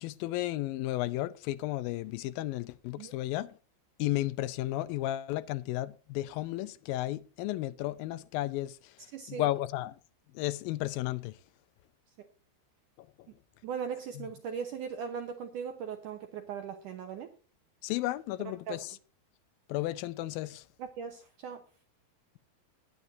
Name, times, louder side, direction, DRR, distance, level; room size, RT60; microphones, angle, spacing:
voice 1, 0.0-3.5 4.0-8.8 9.3-9.9 10.4-11.4 14.2-14.3 17.8-19.0 19.7-20.6, left 16 dB, 80° left, 2.2 m, -33 dB
voice 2, 9.1-9.5 13.6-17.3 18.7-18.8 20.8-21.6, right 7 dB, 70° right, 2.1 m, -38 dB
19.5 x 9.5 x 2.6 m
omnidirectional pair, 4.6 m